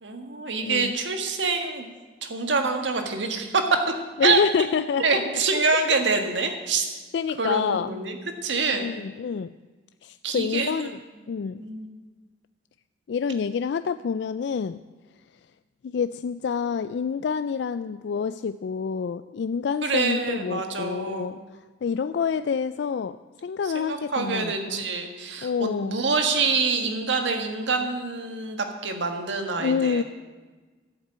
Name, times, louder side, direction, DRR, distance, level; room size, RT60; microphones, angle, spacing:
voice 1, 0.0-1.9 2.2-3.8 4.2-4.4 5.0-6.9 7.4-8.2 8.4-8.9 10.2-11.0 11.6-11.9 19.8-21.4 23.7-30.0, right 4 dB, 80° right, 5 dB, 1.7 m, -26 dB
voice 2, 0.6-1.0 4.2-5.4 5.7-5.8 6.4-6.6 7.1-7.9 8.7-9.5 10.0-10.9 11.3-11.6 13.1-14.8 15.8-21.4 21.8-24.9 25.4-26.1 29.6-30.0, left 6 dB, 70° left, 12 dB, 0.3 m, -27 dB
12.5 x 7.4 x 8.7 m, 1.3 s
head